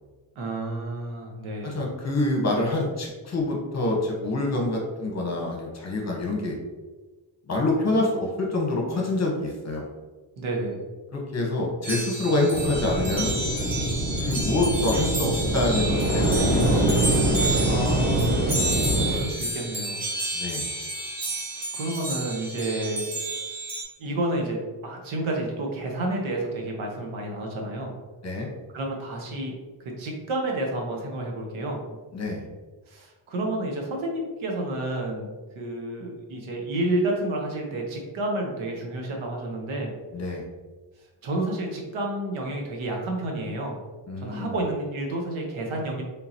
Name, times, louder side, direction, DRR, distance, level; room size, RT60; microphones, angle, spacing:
voice 1, 0.3-1.8 10.4-10.8 17.6-18.6 19.0-20.0 21.5-23.1 24.0-27.9 28.7-29.5 29.8-31.8 32.9-35.3 35.5-39.9 41.2-43.8 44.2-46.0, right 1 dB, 70° right, 0 dB, 1.1 m, -30 dB
voice 2, 1.6-6.5 7.5-9.9 11.1-13.4 14.2-17.1 20.3-20.6 28.2-28.5 32.1-32.4 40.1-40.4 44.1-44.5, left 2 dB, 30° left, -1 dB, 1.1 m, -26 dB
sound 1, 11.8-23.8, right 2 dB, 45° right, 1.4 m, -31 dB
sound 2, 12.5-19.2, right 1 dB, 20° right, 1.1 m, -24 dB
3.8 x 3.6 x 2.9 m, 1.3 s
cardioid pair, 105°, 49 cm